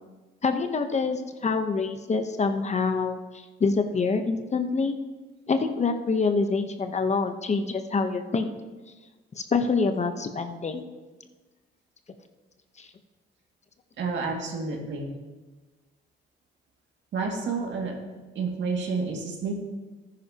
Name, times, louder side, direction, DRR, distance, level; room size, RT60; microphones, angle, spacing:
voice 1, 0.4-5.0 5.5-8.5 9.4-10.9 12.8-12.9, left 4 dB, 35° left, 7 dB, 0.9 m, -26 dB
voice 2, 14.0-15.1 17.1-17.9 18.4-19.5, right 4 dB, 65° right, 1 dB, 2.1 m, -29 dB
13.5 x 10.0 x 2.9 m, 1.2 s
cardioid pair, 90°, 20 cm